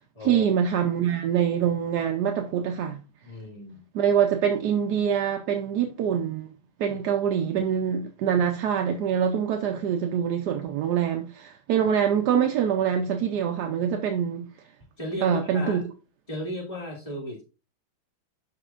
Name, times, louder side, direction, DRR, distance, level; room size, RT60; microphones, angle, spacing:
voice 1, 0.2-3.0 3.9-6.5 6.8-14.4 15.2-15.8, right 8 dB, 65° right, 1.1 m, -24 dB
voice 2, 3.2-3.8 6.9-7.0 15.0-15.8 16.3-17.4, left 1 dB, 15° left, 2.3 m, -35 dB
11.5 x 4.4 x 2.4 m
omnidirectional pair, 2.2 m